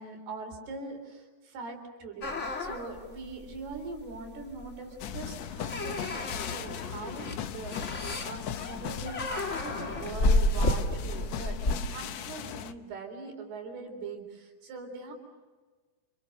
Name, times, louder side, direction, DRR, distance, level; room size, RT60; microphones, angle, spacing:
voice 1, 0.0-2.3 2.6-15.1, right 3 dB, 90° right, 4 dB, 6.0 m, -42 dB
sound 1, 2.2-11.8, left 1 dB, 30° left, 1.5 m, -31 dB
sound 2, 5.0-12.7, left 9 dB, 80° left, 1.5 m, -38 dB
30.0 x 29.0 x 6.6 m, 1.3 s
omnidirectional pair, 4.5 m